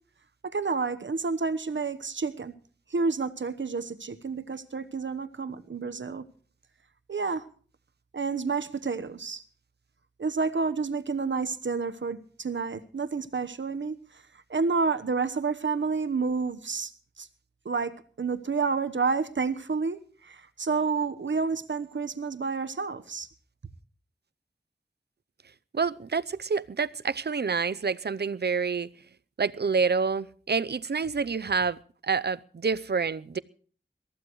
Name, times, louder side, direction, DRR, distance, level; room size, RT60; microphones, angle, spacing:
voice 1, 0.4-2.5 2.9-6.2 7.1-7.4 8.1-9.4 10.2-14.2 14.5-16.9 17.2-17.3 17.6-23.3, right 4 dB, 80° right, 1.1 m, -29 dB
voice 2, 25.7-28.9 29.4-33.4, right 5 dB, 60° right, 0.6 m, -28 dB
23.0 x 14.5 x 3.1 m
wide cardioid pair, 65°, 19 cm